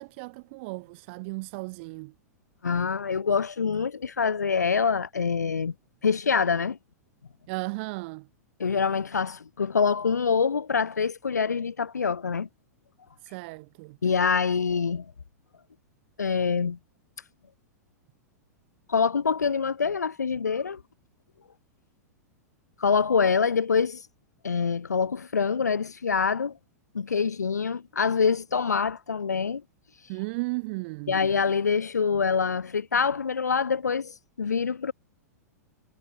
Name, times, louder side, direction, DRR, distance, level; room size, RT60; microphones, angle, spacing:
voice 1, 0.0-2.1 7.5-8.3 13.2-14.0 30.1-31.2, right 27 dB, 45° right, 0.5 m, -35 dB
voice 2, 2.6-5.7 6.0-6.8 8.6-12.5 14.0-15.1 16.2-16.8 18.9-20.8 22.8-24.0 24.4-26.5 26.9-29.6 31.1-34.9, left 5 dB, 85° left, 0.4 m, -25 dB
figure-of-eight pair, 100°, 9 cm